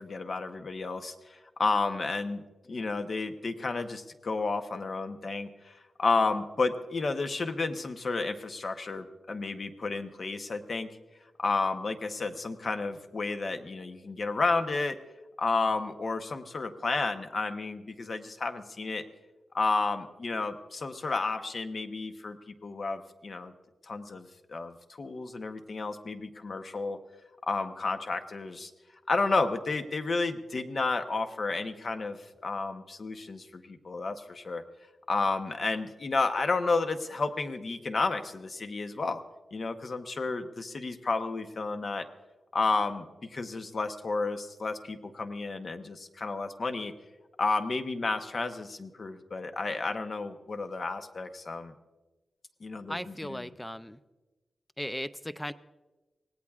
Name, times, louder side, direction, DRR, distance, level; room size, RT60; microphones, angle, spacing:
voice 1, 0.0-2.4 2.7-10.9 11.4-15.0 15.4-19.0 19.5-23.5 23.8-27.0 27.4-28.7 29.1-32.2 32.4-34.6 35.1-39.2 39.5-42.1 42.5-46.9 47.4-51.7 52.6-53.5, left 3 dB, 40° left, 7 dB, 0.9 m, -31 dB
voice 2, 52.9-54.0 54.8-55.5, equal, 5° left, 13 dB, 0.4 m, -37 dB
25.0 x 18.5 x 2.4 m, 1.2 s
wide cardioid pair, 170°, 0 cm